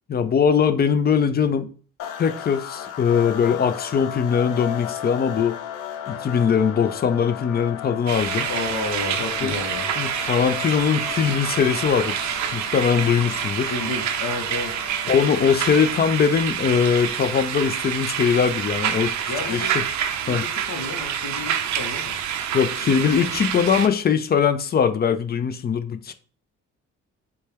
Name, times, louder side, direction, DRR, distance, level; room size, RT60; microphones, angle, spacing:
voice 1, 0.1-1.7 2.2-5.6 6.1-8.5 9.4-9.5 10.0-13.7 15.1-19.6 20.3-20.4 22.5-26.1, left 7 dB, 35° left, 0.4 m, -21 dB
sound 1, 2.0-16.2, left 10 dB, 80° left, 0.6 m, -35 dB
sound 2, 8.1-23.9, right 9 dB, 70° right, 0.5 m, -27 dB
voice 2, 8.5-9.9 13.7-14.8 19.3-19.9 20.2-22.2, left 3 dB, 60° left, 0.9 m, -31 dB
4.2 x 2.2 x 3.3 m
cardioid pair, 90°, 30 cm